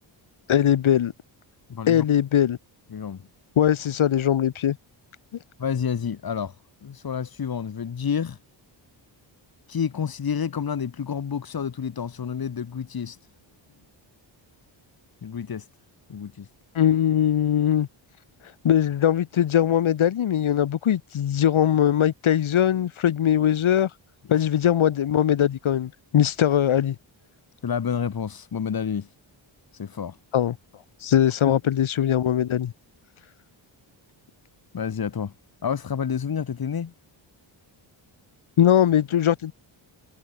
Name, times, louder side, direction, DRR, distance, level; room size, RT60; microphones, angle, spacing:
voice 1, 0.5-1.1 1.9-2.6 3.6-4.8 16.8-17.9 18.6-23.9 24.3-27.0 30.3-30.5 31.0-32.7 38.6-39.5, left 10 dB, 85° left, 5.4 m, -21 dB
voice 2, 1.7-2.0 2.9-3.2 5.6-6.5 6.8-8.4 9.7-13.2 15.2-15.7 16.1-16.5 27.6-29.1 29.7-30.2 31.4-31.6 34.7-35.3 35.6-36.9, left 7 dB, 50° left, 3.9 m, -29 dB
wide cardioid pair, 140°, 47 cm